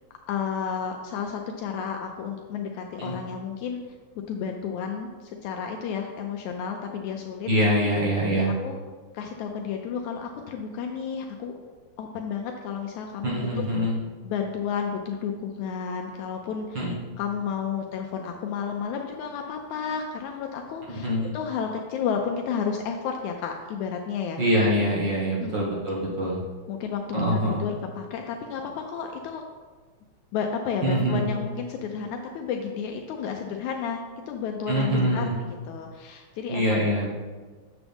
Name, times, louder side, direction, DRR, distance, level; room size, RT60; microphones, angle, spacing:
voice 1, 0.3-3.8 4.3-7.5 8.4-8.8 9.1-11.6 12.0-13.6 14.2-16.9 17.2-24.4 25.4-25.6 26.7-27.0 27.5-29.4 30.3-36.9, left 6 dB, 80° left, 3 dB, 1.9 m, -32 dB
voice 2, 7.5-8.5 13.2-13.9 16.7-16.9 21.0-21.3 24.4-26.4 27.1-27.6 30.8-31.2 34.7-35.3 36.5-37.1, equal, 45° right, -6 dB, 1.8 m, -24 dB
8.9 x 7.2 x 3.5 m, 1.4 s
omnidirectional pair, 3.4 m